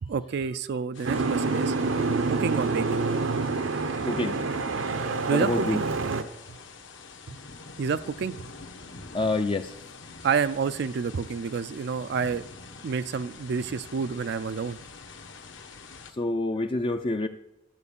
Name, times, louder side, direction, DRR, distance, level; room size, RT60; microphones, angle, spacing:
voice 1, 0.0-1.8 2.3-3.0 5.3-5.8 7.8-8.3 10.2-12.5 12.8-14.8, right 6 dB, 55° right, 13 dB, 0.4 m, -29 dB
sound 1, 0.9-16.1, left 4 dB, 65° left, 1.1 m, -46 dB
Boat Water vehicle, 1.0-6.2, right 3 dB, 75° right, 0.8 m, -27 dB
voice 2, 4.0-4.4 5.3-5.8 9.1-9.7 16.2-17.3, left 2 dB, 25° left, 7 dB, 0.4 m, -27 dB
11.0 x 7.2 x 6.8 m, 0.87 s
head